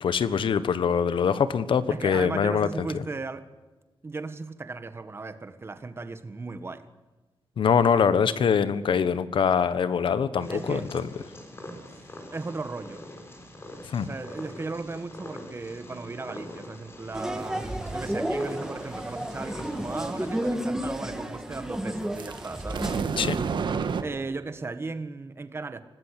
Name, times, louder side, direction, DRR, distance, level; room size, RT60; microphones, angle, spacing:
voice 1, 0.0-3.0 7.6-11.1 13.8-14.1 23.2-23.4, left 7 dB, 75° left, 1.4 m, -24 dB
voice 2, 1.9-3.5 4.0-6.9 10.5-10.8 12.3-13.0 14.0-22.9 24.0-25.8, right 3 dB, 30° right, 1.6 m, -36 dB
Purr, 10.4-20.5, left 1 dB, 30° left, 4.0 m, -43 dB
sound 1, 17.1-23.0, right 1 dB, 5° right, 2.2 m, -32 dB
sound 2, 22.2-24.0, right 6 dB, 65° right, 1.7 m, -29 dB
25.5 x 18.5 x 8.3 m
wide cardioid pair, 175°, 9 cm